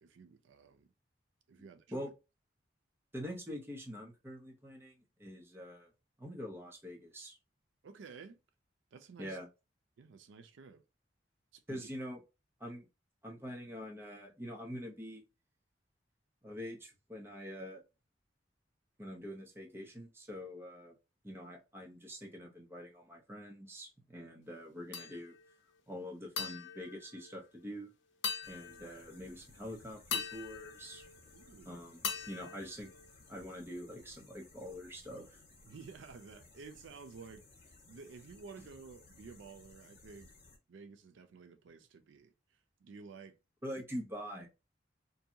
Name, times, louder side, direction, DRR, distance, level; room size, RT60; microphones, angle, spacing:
voice 1, 0.0-0.9 1.5-2.1 7.8-8.4 8.9-9.4 10.0-10.8 11.5-11.9 31.3-31.9 35.6-37.5 37.9-40.3 40.7-42.3 42.8-43.4, right 5 dB, 90° right, 0.4 m, -52 dB
voice 2, 3.1-5.9 6.2-7.4 9.2-9.5 11.7-12.2 12.6-12.9 13.2-15.2 16.4-17.8 19.0-20.9 21.2-25.3 25.9-27.9 28.4-31.1 31.7-32.0 32.3-32.9 33.3-35.4 43.6-44.5, equal, 15° right, 0.6 m, -45 dB
sound 1, 24.9-25.5 26.4-27.8 28.2-29.3 30.1-31.6 32.0-33.5, left 6 dB, 75° left, 0.6 m, -42 dB
sound 2, 28.4-40.6, left 3 dB, 55° left, 1.2 m, -60 dB
2.6 x 2.2 x 2.7 m
head